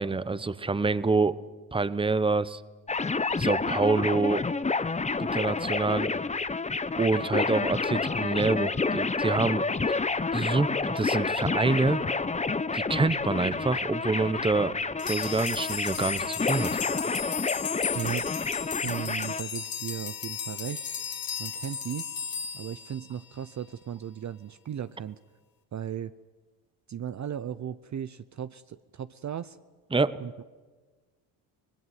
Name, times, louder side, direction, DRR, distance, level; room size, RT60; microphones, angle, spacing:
voice 1, 0.0-1.4 1.7-2.6 3.3-4.4 5.2-6.1 7.0-9.6 10.3-12.0 12.7-14.7 15.1-16.7 29.9-30.2, right 3 dB, 10° right, 16 dB, 0.9 m, -26 dB
sound 1, 2.9-19.4, left 4 dB, 15° left, 0.8 m, -29 dB
sound 2, 15.0-23.5, left 7 dB, 45° left, 2.5 m, -35 dB
voice 2, 17.9-18.3 18.8-20.8 21.4-22.1 22.5-25.2 25.7-26.1 26.9-29.6 30.2-30.4, right 9 dB, 40° right, 13 dB, 0.7 m, -36 dB
24.5 x 19.5 x 9.4 m, 1.4 s
supercardioid pair, 75°, 46 cm